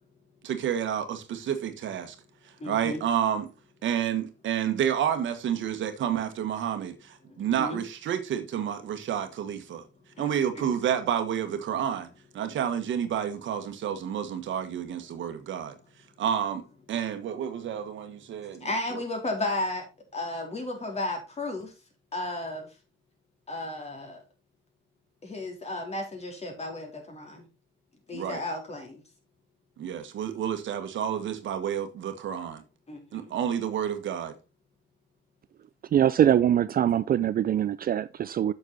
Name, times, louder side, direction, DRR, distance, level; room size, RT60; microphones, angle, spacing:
voice 1, 0.4-2.1 2.6-3.5 3.8-9.8 10.2-12.1 12.3-15.7 16.2-16.6 16.9-19.0 28.1-28.4 29.8-32.6 33.1-34.3, right 9 dB, 70° right, 1.5 m, -30 dB
voice 2, 2.6-3.0 7.3-7.8 10.2-10.7 18.6-19.9 20.1-21.7 22.1-22.7 23.5-24.2 25.2-27.4 28.1-29.0 32.9-33.3, left 2 dB, 35° left, 3.8 m, -34 dB
voice 3, 35.9-38.5, right 10 dB, 50° right, 0.4 m, -23 dB
7.8 x 6.5 x 4.1 m
cardioid pair, 90°, 20 cm